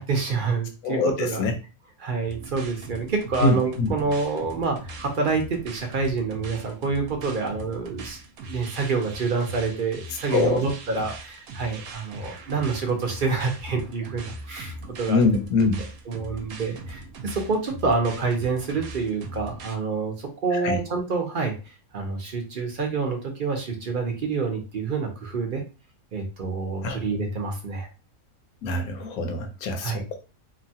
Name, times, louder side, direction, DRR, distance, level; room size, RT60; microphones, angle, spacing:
voice 1, 0.0-1.4 2.0-15.2 15.6-15.7 16.1-21.5 21.9-25.6 26.1-27.9 29.8-30.0, right 4 dB, 50° right, 3 dB, 0.6 m, -27 dB
voice 2, 0.8-1.5 3.4-4.0 10.3-10.6 15.1-15.8 20.5-20.8 26.8-27.0 28.6-30.2, left 3 dB, 85° left, 5 dB, 1.2 m, -24 dB
sound 1, 2.3-19.8, right 2 dB, 75° right, 1.0 m, -40 dB
2.9 x 2.2 x 2.7 m, 0.32 s
omnidirectional pair, 1.5 m